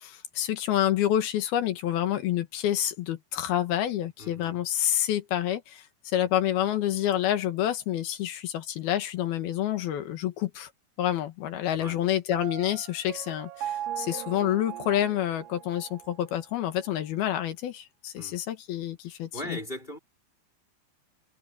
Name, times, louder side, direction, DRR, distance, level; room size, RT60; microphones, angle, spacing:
voice 1, 0.0-10.7 11.0-19.6, left 11 dB, 65° left, 2.9 m, -28 dB
voice 2, 4.2-4.6 6.1-6.3 11.7-12.0 18.2-18.4 19.0-20.0, left 1 dB, 10° left, 4.1 m, -40 dB
Piano, 12.3-16.2, right 11 dB, 90° right, 1.9 m, -38 dB
omnidirectional pair, 5.6 m